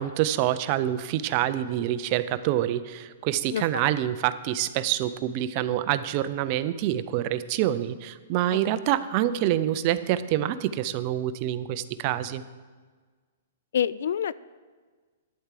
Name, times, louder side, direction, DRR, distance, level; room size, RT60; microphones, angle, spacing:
voice 1, 0.0-12.4, right 12 dB, 35° right, 14 dB, 0.4 m, -26 dB
voice 2, 3.5-3.9 13.7-14.3, left 9 dB, 70° left, 19 dB, 0.3 m, -27 dB
11.5 x 4.7 x 7.5 m, 1.5 s
hypercardioid pair, 155°, 0 cm